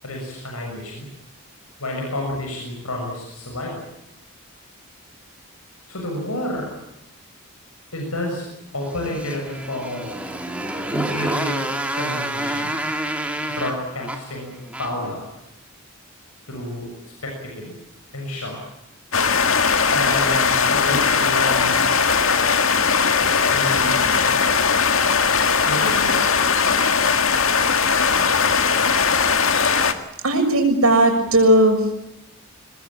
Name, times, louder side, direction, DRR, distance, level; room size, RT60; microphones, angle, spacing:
voice 1, 0.0-1.1 1.8-3.8 5.9-6.7 7.9-8.5 8.7-10.2 10.9-11.7 12.0-12.7 13.5-14.5 14.8-15.3 16.5-16.9 17.2-17.7 18.1-18.6 19.9-21.8 23.5-24.0 25.6-26.5, left 1 dB, 90° left, 0 dB, 7.0 m, -29 dB
Motorcycle, 8.8-15.1, right 1 dB, 5° right, 2.3 m, -28 dB
sound 1, 19.1-29.9, left 5 dB, 65° left, 1.9 m, -19 dB
voice 2, 30.2-32.0, right 1 dB, 80° right, 3 dB, 6.8 m, -16 dB
22.5 x 21.0 x 8.8 m, 0.85 s
head